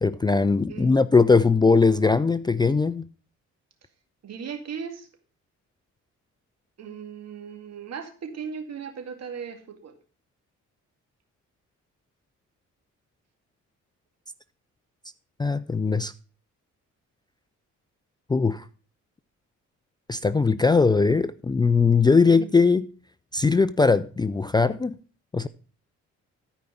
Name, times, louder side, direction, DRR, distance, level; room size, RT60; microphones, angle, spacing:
voice 1, 0.0-3.1 15.4-16.1 18.3-18.6 20.1-22.9 23.3-24.9 25.3-25.5, left 4 dB, 15° left, 0.4 m, -20 dB
voice 2, 0.7-1.0 4.2-5.1 6.8-9.9 22.3-22.5, right 7 dB, 60° right, 2.2 m, -37 dB
13.5 x 5.0 x 5.7 m
cardioid pair, 90°, 30 cm